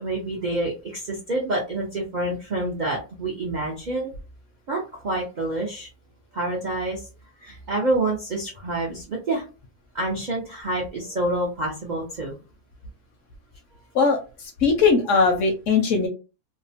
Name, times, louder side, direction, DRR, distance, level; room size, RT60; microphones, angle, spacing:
voice 1, 0.0-4.1 4.7-5.9 6.3-7.0 7.4-9.4 9.9-12.3, right 2 dB, 80° right, -2 dB, 0.4 m, -27 dB
voice 2, 14.6-16.1, left 4 dB, 70° left, 4 dB, 0.8 m, -19 dB
2.7 x 2.1 x 2.7 m, 0.32 s
omnidirectional pair, 1.7 m